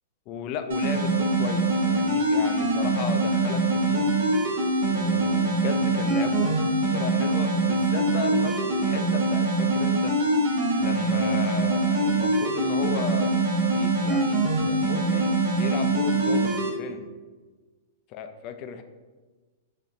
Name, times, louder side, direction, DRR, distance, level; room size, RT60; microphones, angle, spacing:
voice 1, 0.3-4.1 5.0-6.6 6.9-10.2 10.8-13.4 13.7-17.1 18.1-18.8, left 7 dB, 45° left, 7 dB, 0.3 m, -35 dB
sound 1, 0.7-16.7, right 2 dB, 70° right, 0.8 m, -23 dB
4.2 x 2.6 x 2.5 m, 1.3 s
hypercardioid pair, 110°, 0 cm